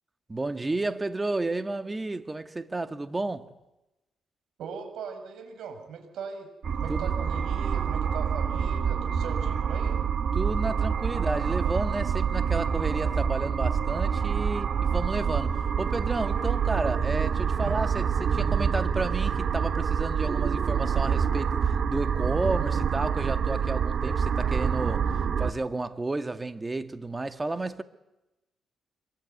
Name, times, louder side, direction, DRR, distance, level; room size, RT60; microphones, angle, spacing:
voice 1, 0.3-3.5 6.9-7.1 10.3-27.8, right 2 dB, 20° right, 1.8 m, -32 dB
voice 2, 4.6-6.5 6.7-10.0 17.6-17.8, right 6 dB, 75° right, 6.9 m, -39 dB
sound 1, 6.6-25.5, right 7 dB, 55° right, 1.7 m, -26 dB
26.5 x 23.0 x 9.5 m
cardioid pair, 90°, 0 cm